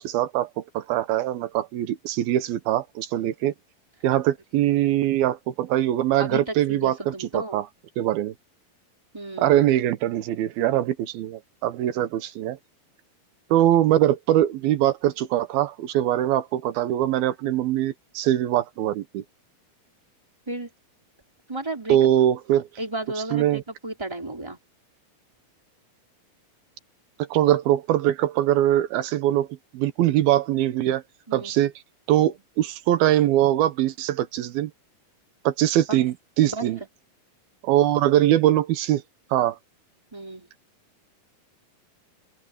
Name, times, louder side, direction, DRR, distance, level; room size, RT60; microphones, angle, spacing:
voice 1, 0.0-3.5 4.0-7.6 8.0-8.3 9.4-12.6 13.5-19.2 21.9-22.7 23.3-23.6 27.3-29.5 29.7-31.0 31.3-31.7 32.1-34.7 35.4-36.8 37.6-39.0 39.3-39.6, right 12 dB, 85° right, 3.0 m, -22 dB
voice 2, 6.2-7.6 9.1-9.6 20.5-20.7 21.5-22.1 22.8-24.6 31.3-31.5 32.2-32.3 35.9-36.0 36.4-36.7 40.1-40.5, right 2 dB, 5° right, 3.9 m, -33 dB
open air
omnidirectional pair, 4.2 m